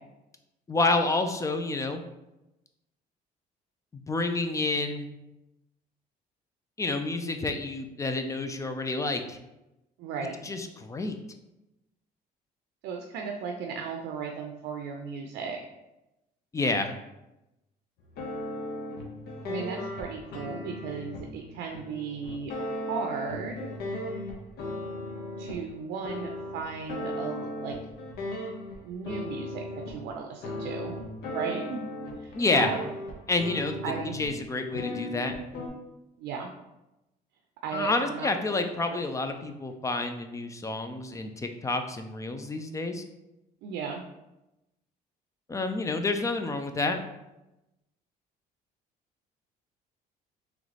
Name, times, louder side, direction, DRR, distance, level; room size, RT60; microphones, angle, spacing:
voice 1, 0.7-2.0 4.1-5.1 6.8-9.4 10.4-11.2 16.5-16.9 32.4-32.7 33.3-35.4 37.7-43.0 45.5-47.0, left 3 dB, 20° left, 7 dB, 0.4 m, -29 dB
voice 2, 10.0-10.4 12.8-15.6 19.5-23.7 25.4-27.8 28.8-31.0 31.3-31.9 32.2-32.9 33.8-34.2 36.2-36.5 37.6-38.6 38.9-39.0 43.6-44.0, right 5 dB, 85° right, 3 dB, 0.5 m, -36 dB
sound 1, 18.0-25.6 26.0-28.8 29.0-30.0 30.4-34.3 34.7-35.7, left 1 dB, 70° left, 0.9 m, -36 dB
3.7 x 3.1 x 3.3 m, 0.94 s
cardioid pair, 110°, 17 cm